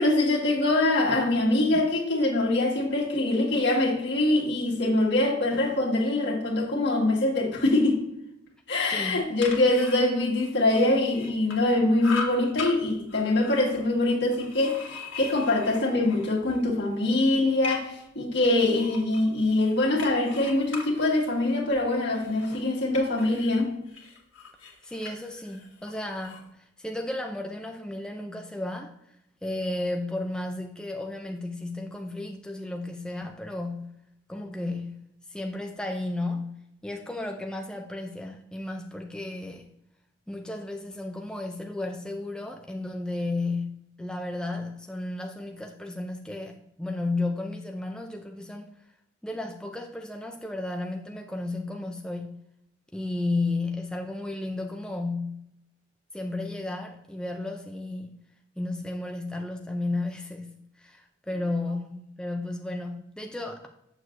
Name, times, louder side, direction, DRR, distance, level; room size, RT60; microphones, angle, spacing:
voice 1, 0.0-8.0 8.7-23.7, left 2 dB, 60° left, 1.6 m, -24 dB
voice 2, 8.9-9.2 24.8-28.9 29.4-33.9 34.3-35.0 35.3-39.7 40.3-48.7 49.2-52.4 52.9-55.4 56.1-58.2 58.6-63.7, left 2 dB, 5° left, 0.3 m, -33 dB
sound 1, 9.2-11.7 12.0-12.7 13.1-16.6 17.0-18.1 18.6-23.6 23.9-26.5, left 4 dB, 75° left, 1.5 m, -40 dB
7.5 x 6.4 x 2.5 m
head